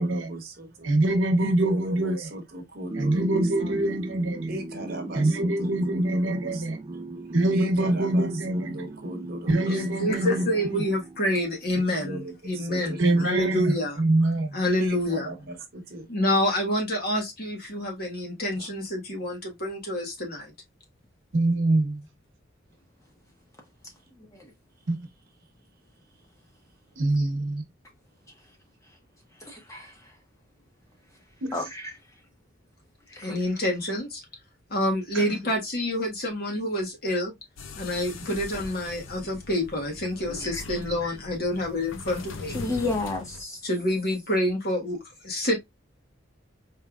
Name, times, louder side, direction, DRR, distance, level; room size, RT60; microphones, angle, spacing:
voice 1, 0.0-0.9 1.4-4.0 4.5-7.1 7.5-10.5 12.0-13.3 14.8-16.1 18.6-18.7, right 1 dB, 50° right, 1.0 m, -38 dB
voice 2, 0.8-2.3 3.0-4.6 5.1-6.8 7.3-8.8 9.5-10.5 10.7-10.8 13.0-14.6 21.3-22.0 24.9-25.0 27.0-27.6 31.4-31.5 35.1-35.3, right 1 dB, 80° right, 1.0 m, -24 dB
sound 1, 2.9-11.7, right 2 dB, 25° right, 0.4 m, -38 dB
voice 3, 9.7-14.0 14.3-15.3 16.1-20.5 33.2-34.2 34.7-37.3 37.7-42.6 43.6-45.0 45.2-45.6, left 1 dB, 50° left, 1.5 m, -27 dB
voice 4, 24.2-24.5 29.4-29.9 31.5-31.9 33.1-33.4 40.5-40.6 41.0-41.1 42.5-43.6, left 2 dB, 15° left, 1.2 m, -32 dB
sound 2, 37.6-43.4, left 3 dB, 85° left, 0.6 m, -40 dB
4.4 x 3.2 x 2.4 m
head